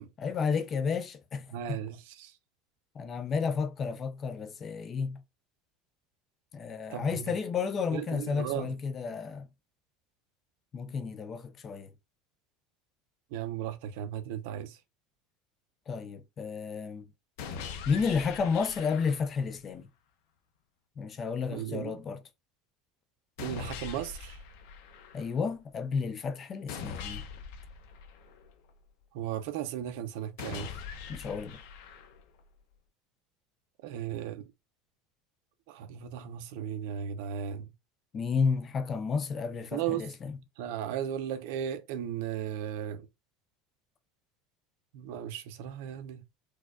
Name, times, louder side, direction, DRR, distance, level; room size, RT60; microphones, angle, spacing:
voice 1, 0.2-1.8 3.0-5.2 6.5-9.5 10.7-11.9 15.9-17.1 17.9-19.9 21.0-22.2 25.1-27.2 31.1-31.6 38.1-40.4, left 5 dB, 25° left, 0.5 m, -32 dB
voice 2, 1.5-2.3 6.9-7.3 7.9-8.7 13.3-14.8 21.5-22.0 23.4-24.4 29.1-30.7 33.8-34.5 35.7-37.7 39.7-40.1 40.6-43.1 44.9-46.2, right 10 dB, 75° right, 0.6 m, -36 dB
sound 1, 17.4-19.4 23.4-25.4 26.7-28.7 30.4-32.4, left 6 dB, 75° left, 0.8 m, -42 dB
4.5 x 2.3 x 2.3 m
cardioid pair, 155°, 0 cm